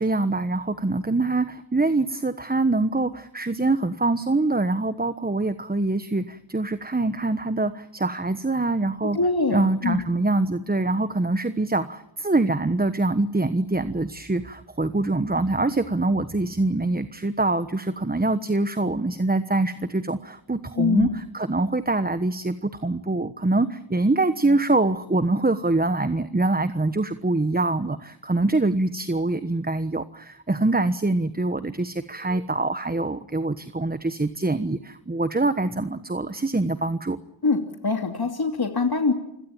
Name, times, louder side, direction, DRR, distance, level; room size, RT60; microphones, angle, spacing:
voice 1, 0.0-9.2 9.5-37.2, right 2 dB, 20° right, 12 dB, 1.2 m, -24 dB
voice 2, 9.1-10.0 20.8-21.1 37.4-39.1, left 4 dB, 50° left, 4 dB, 2.8 m, -23 dB
29.5 x 17.0 x 8.9 m, 0.83 s
cardioid pair, 45°, 47 cm